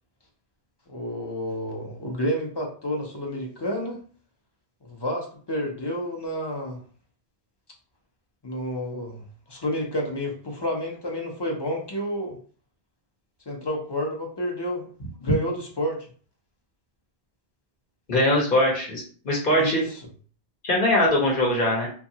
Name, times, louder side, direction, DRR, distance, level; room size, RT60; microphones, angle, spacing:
voice 1, 0.9-4.0 4.8-6.8 8.4-9.2 9.5-12.4 13.5-14.9 15.2-16.0 19.6-19.9, equal, 30° left, 0 dB, 0.5 m, -30 dB
voice 2, 18.1-19.8 20.6-21.9, left 1 dB, 55° left, -2 dB, 0.9 m, -22 dB
2.8 x 2.3 x 2.7 m, 0.43 s
omnidirectional pair, 1.1 m